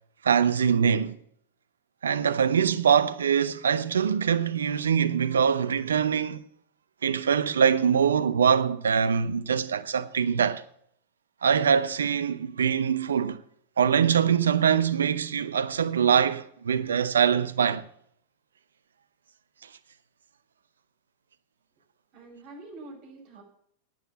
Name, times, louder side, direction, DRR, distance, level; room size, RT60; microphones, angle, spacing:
voice 1, 0.2-1.2 2.0-6.5 7.0-10.6 11.4-13.4 13.8-17.8, right 7 dB, 75° right, 0.8 m, -23 dB
voice 2, 22.1-23.4, right 2 dB, 45° right, 6.3 m, -45 dB
10.5 x 9.2 x 7.1 m
figure-of-eight pair, 90°, 0 cm